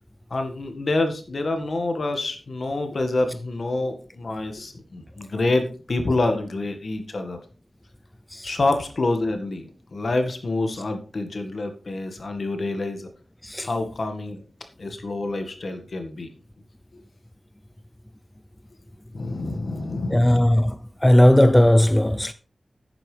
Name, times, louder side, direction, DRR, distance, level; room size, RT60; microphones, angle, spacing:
voice 1, 0.3-7.4 8.4-13.1 13.6-14.4 14.8-16.3 16.9-17.0 19.1-20.4, left 2 dB, 60° left, 1.9 m, -27 dB
voice 2, 20.1-22.3, left 1 dB, 10° left, 0.5 m, -17 dB
11.0 x 8.9 x 3.4 m
wide cardioid pair, 95°, 0 cm